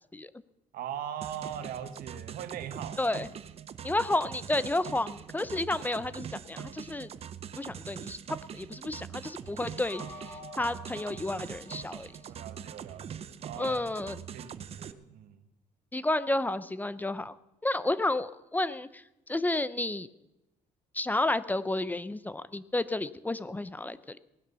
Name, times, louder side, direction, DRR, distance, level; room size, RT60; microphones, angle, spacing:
voice 1, 0.7-3.0 12.3-13.8 14.3-15.4, right 9 dB, 85° right, 10 dB, 1.5 m, -40 dB
sound 1, 1.2-14.9, right 8 dB, 45° right, 0.8 m, -43 dB
voice 2, 3.0-3.3 3.8-7.1 7.6-8.2 8.5-10.0 10.6-12.1 13.6-14.2 15.9-17.3 17.6-19.0 19.3-20.1 20.9-24.2, left 2 dB, 10° left, 15 dB, 0.5 m, -31 dB
sound 2, 9.8-12.9, left 2 dB, 30° left, 6.4 m, -49 dB
18.5 x 11.0 x 6.9 m, 0.92 s
cardioid pair, 145°, 15 cm